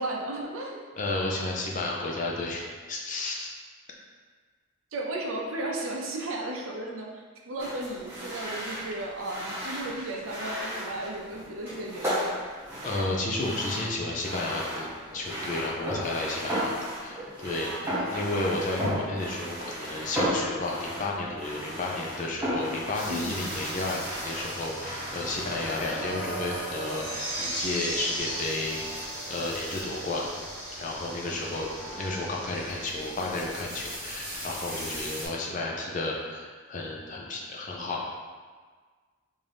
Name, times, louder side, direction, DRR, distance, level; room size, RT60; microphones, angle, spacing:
voice 1, 0.0-0.8 4.9-12.3 17.6-18.3 23.1-23.4, right 1 dB, 70° right, 0 dB, 0.5 m, -35 dB
voice 2, 1.0-3.5 12.8-16.8 17.0-30.3 30.8-38.2, left 2 dB, 35° left, -2 dB, 0.5 m, -32 dB
sound 1, 7.6-25.9, equal, 10° right, 0.9 m, -35 dB
sound 2, 22.9-35.3, right 1 dB, 60° left, 1.5 m, -37 dB
3.6 x 2.7 x 3.3 m, 1.5 s
head